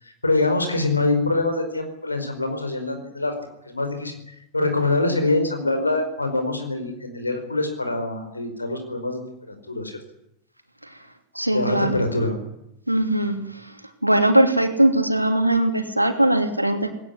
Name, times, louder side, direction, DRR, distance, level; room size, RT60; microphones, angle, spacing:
voice 1, 0.0-3.3 3.6-4.1 4.5-9.2 9.5-10.0 11.5-12.4, left 2 dB, 80° left, 6 dB, 5.0 m, -24 dB
voice 2, 11.3-12.0 12.9-13.4 14.0-16.9, right 1 dB, 85° right, 6 dB, 2.9 m, -20 dB
20.0 x 18.0 x 9.9 m, 0.83 s
figure-of-eight pair, 90°, 0 cm